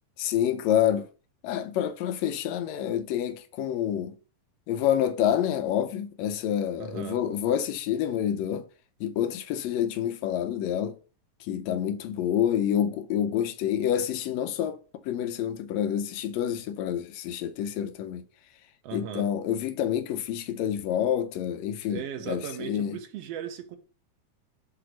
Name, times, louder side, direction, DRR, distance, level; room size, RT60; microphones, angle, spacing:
voice 1, 0.2-1.1 1.4-4.1 4.7-8.7 9.0-11.0 11.4-18.2 18.9-23.0, left 10 dB, 85° left, 1.6 m, -28 dB
voice 2, 6.8-7.2 18.8-19.3 21.9-23.8, right 9 dB, 70° right, 1.6 m, -37 dB
7.8 x 2.8 x 5.0 m
omnidirectional pair, 3.6 m